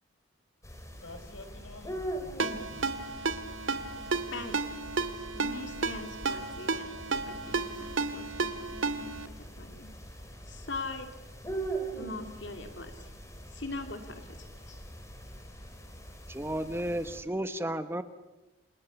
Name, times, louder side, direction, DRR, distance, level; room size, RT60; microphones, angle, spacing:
sound 1, 0.6-17.2, right 2 dB, 15° left, 4.1 m, -43 dB
voice 1, 1.0-3.0, left 2 dB, 85° left, 8 dB, 4.9 m, -50 dB
Ringtone, 2.4-9.3, right 4 dB, 85° right, 1.8 m, -33 dB
voice 2, 5.3-6.9 7.1-9.9 10.5-11.1 11.9-13.1 13.5-14.8, left 3 dB, 60° left, 6 dB, 2.5 m, -42 dB
voice 3, 16.3-18.0, right 1 dB, 10° right, 10 dB, 1.1 m, -33 dB
29.5 x 28.0 x 7.0 m, 1.1 s
head